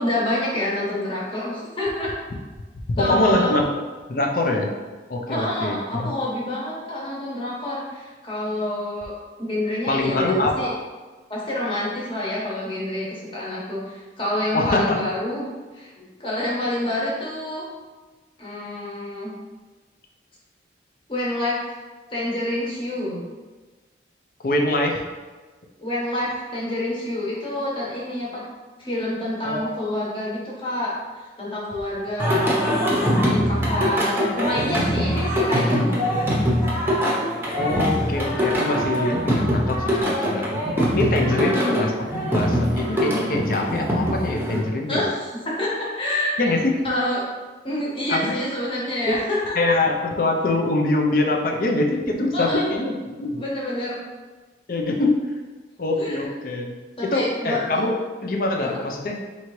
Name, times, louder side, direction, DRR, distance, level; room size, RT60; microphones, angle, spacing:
voice 1, 0.0-2.1 3.0-3.5 5.3-9.1 9.4-10.7 11.3-15.5 15.7-17.6 18.4-19.3 21.1-21.6 22.1-23.2 25.8-28.4 28.8-36.0 41.3-41.7 44.9-46.5 46.8-47.2 47.6-49.5 52.3-52.7 53.4-54.0 56.0-56.2 57.0-57.6 58.6-58.7, left 1 dB, 30° left, -5 dB, 1.1 m, -27 dB
voice 2, 3.0-3.6 4.1-4.7 5.1-6.1 9.9-10.7 14.5-15.0 24.4-25.0 29.4-29.7 37.6-40.6 40.9-45.0 46.4-46.8 48.1-48.4 49.1-49.2 49.6-53.4 54.7-55.2 55.8-56.7 57.0-59.2, left 2 dB, 50° left, 2 dB, 0.5 m, -23 dB
Singing, 32.2-44.6, equal, 10° right, 0.7 m, -23 dB
4.6 x 2.8 x 3.0 m, 1.3 s
head